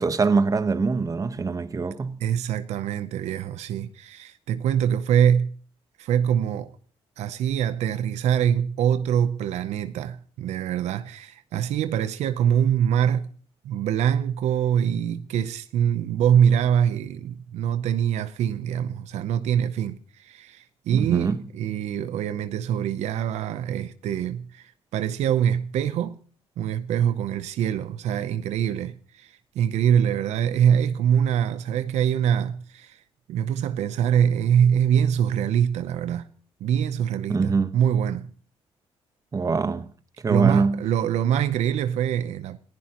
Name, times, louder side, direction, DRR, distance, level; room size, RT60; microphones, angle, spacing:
voice 1, 0.0-2.2 20.9-21.4 37.3-37.7 39.3-39.9 40.2-40.8, right 4 dB, 30° right, 1.1 m, -23 dB
voice 2, 2.2-5.5 6.0-6.8 7.2-13.3 13.6-26.2 26.6-33.0 33.3-36.3 36.6-38.3 40.3-42.6, right 9 dB, 85° right, 0.7 m, -24 dB
28.0 x 15.5 x 3.0 m
cardioid pair, 95°, 11 cm